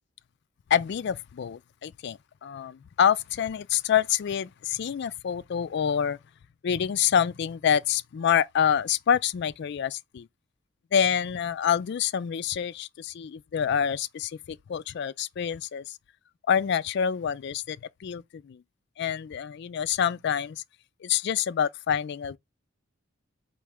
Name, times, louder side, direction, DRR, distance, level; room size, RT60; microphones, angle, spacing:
voice 1, 0.7-6.2 6.6-10.3 10.9-16.0 16.5-18.6 19.0-20.6 21.0-22.4, left 8 dB, 55° left, 0.3 m, -27 dB
4.8 x 3.1 x 3.4 m
head